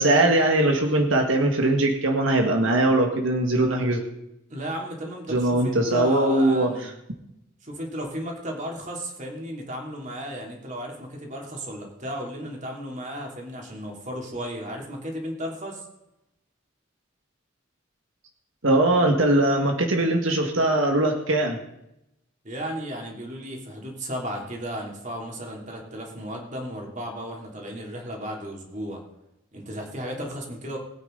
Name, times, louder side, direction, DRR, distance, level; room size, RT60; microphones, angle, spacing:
voice 1, 0.0-4.0 5.3-6.7 18.6-21.6, right 1 dB, 90° right, 2 dB, 1.8 m, -21 dB
voice 2, 4.5-6.9 7.6-15.9 22.4-29.0 29.5-30.8, equal, 40° right, 0 dB, 3.1 m, -34 dB
21.5 x 9.0 x 3.9 m, 0.85 s
head